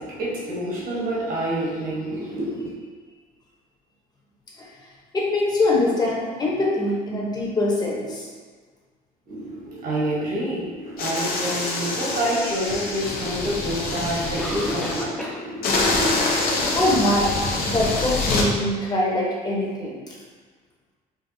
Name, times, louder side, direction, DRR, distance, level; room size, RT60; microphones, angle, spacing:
voice 1, 0.0-2.7 9.3-15.9, right 1 dB, 55° right, -7 dB, 1.2 m, -28 dB
voice 2, 5.1-8.3 16.4-20.1, left 1 dB, 25° left, -4 dB, 0.9 m, -23 dB
sound 1, 11.0-15.0 15.6-18.5, left 3 dB, 60° left, 0.7 m, -25 dB
Cough, 13.2-13.3 14.3-15.5 15.7-15.8 16.4-16.5 17.0-17.1, equal, 5° left, 0.4 m, -32 dB
5.1 x 2.3 x 2.7 m, 1.5 s
cardioid pair, 110°, 17 cm